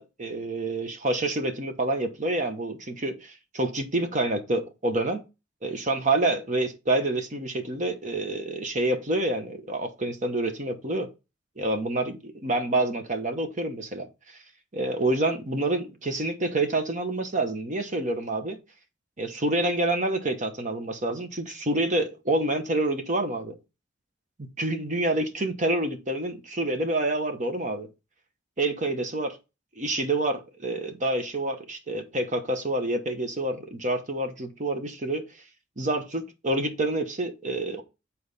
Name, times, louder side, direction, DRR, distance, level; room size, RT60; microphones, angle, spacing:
voice 1, 0.0-5.2 5.6-11.1 11.6-14.4 14.7-18.6 19.2-23.6 24.6-27.9 28.6-29.3 29.8-35.3 35.8-37.8, right 2 dB, 40° right, 1.1 m, -27 dB
8.7 x 4.2 x 4.0 m
head